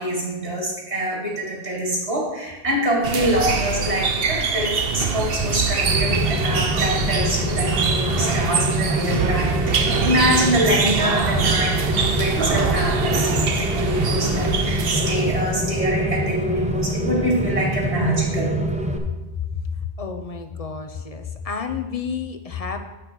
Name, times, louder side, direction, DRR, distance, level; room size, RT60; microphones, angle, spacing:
voice 1, 0.0-18.5, right 1 dB, 75° right, -2 dB, 2.6 m, -25 dB
sound 1, 3.0-15.5, right 5 dB, 60° right, 1.0 m, -24 dB
Rain, 5.8-19.0, equal, 10° right, 0.7 m, -25 dB
voice 2, 19.0-22.8, left 6 dB, 40° left, 6 dB, 0.7 m, -30 dB
8.4 x 6.0 x 6.2 m, 1.1 s
omnidirectional pair, 1.1 m